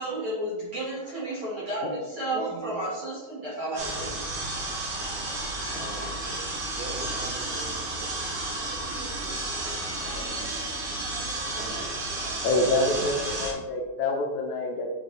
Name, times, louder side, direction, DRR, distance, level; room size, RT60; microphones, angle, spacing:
voice 1, 0.0-4.5, right 1 dB, 45° right, -6 dB, 2.0 m, -32 dB
sound 1, 3.8-13.5, right 2 dB, 60° right, 2.8 m, -32 dB
voice 2, 5.7-9.5 9.8-10.5 11.5-12.0 12.9-13.3, right 4 dB, 85° right, 2 dB, 3.0 m, -44 dB
voice 3, 12.4-14.9, left 2 dB, 75° left, 1 dB, 1.7 m, -26 dB
7.2 x 4.5 x 5.1 m, 1.2 s
omnidirectional pair, 4.2 m